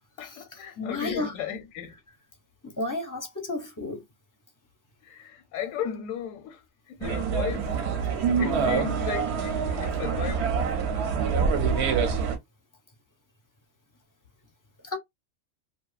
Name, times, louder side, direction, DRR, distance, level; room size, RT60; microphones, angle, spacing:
voice 1, 0.2-2.0 5.0-7.7 8.0-11.4, left 8 dB, 80° left, 1.0 m, -36 dB
voice 2, 0.8-1.3 2.6-4.0 14.8-15.0, left 2 dB, 25° left, 0.4 m, -32 dB
sound 1, 7.0-12.4, right 6 dB, 65° right, 0.8 m, -26 dB
2.6 x 2.3 x 2.3 m
omnidirectional pair, 1.3 m